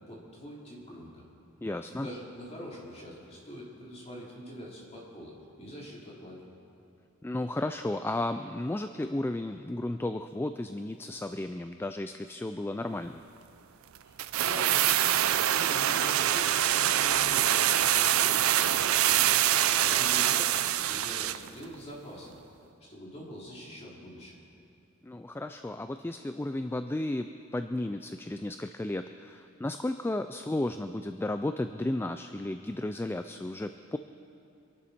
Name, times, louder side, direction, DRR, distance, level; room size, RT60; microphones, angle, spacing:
voice 1, 0.1-1.2 1.9-6.5 14.0-19.4 19.8-22.4 22.9-24.4, equal, 30° left, -5 dB, 3.5 m, -44 dB
voice 2, 1.6-2.1 7.2-13.2 19.9-20.1 25.0-34.0, left 1 dB, 10° left, 9 dB, 0.3 m, -33 dB
sound 1, 14.2-21.5 21.7-21.8, right 11 dB, 80° right, 0.5 m, -25 dB
25.5 x 11.5 x 4.2 m, 2.6 s
head